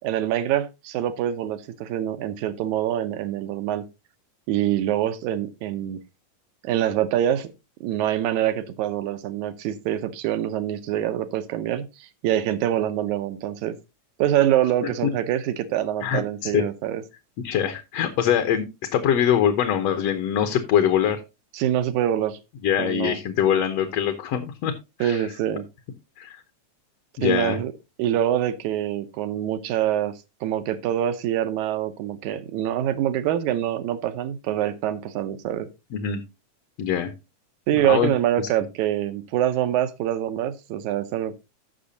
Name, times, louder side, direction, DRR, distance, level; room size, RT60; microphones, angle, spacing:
voice 1, 0.0-3.9 4.5-6.0 6.6-7.5 7.8-13.8 14.2-17.0 21.5-22.4 22.8-23.2 25.0-25.7 27.2-27.7 28.0-30.2 30.4-35.7 37.7-41.5, right 11 dB, 85° right, 2.2 m, -25 dB
voice 2, 16.0-16.6 17.4-18.6 18.9-21.2 22.6-24.7 25.0-25.3 26.2-26.4 27.2-27.6 35.9-36.2 36.8-37.1 37.8-38.1, left 9 dB, 65° left, 1.9 m, -23 dB
15.0 x 6.1 x 2.7 m
omnidirectional pair, 3.3 m